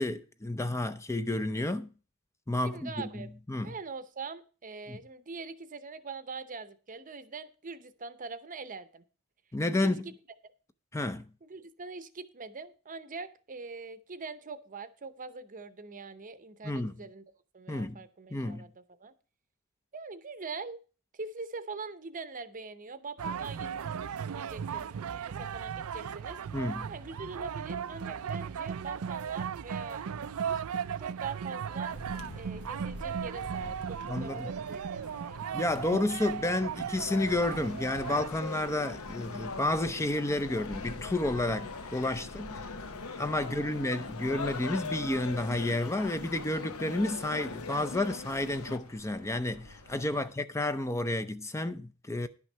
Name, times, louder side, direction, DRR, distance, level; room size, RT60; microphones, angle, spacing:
voice 1, 0.0-1.9 2.5-3.7 4.9-5.0 9.5-10.0 10.9-11.3 16.6-16.9 17.7-18.0 18.3-18.6 26.5-26.9 34.1-34.5 35.5-42.6 43.2-52.3, left 1 dB, 15° left, 0.5 m, -31 dB
voice 2, 2.6-3.3 3.6-9.0 9.7-10.1 11.4-17.2 17.5-19.1 19.9-20.8 21.1-24.0 24.3-26.4 26.9-30.6 31.0-32.0 32.3-35.4 42.2-42.3 43.4-43.7 50.1-50.3, right 4 dB, 35° right, 0.8 m, -43 dB
sound 1, 23.2-38.3, right 7 dB, 70° right, 0.4 m, -37 dB
sound 2, 31.9-50.4, left 1 dB, 85° left, 1.5 m, -49 dB
sound 3, 36.9-48.8, left 4 dB, 70° left, 0.8 m, -41 dB
11.0 x 6.1 x 5.5 m
head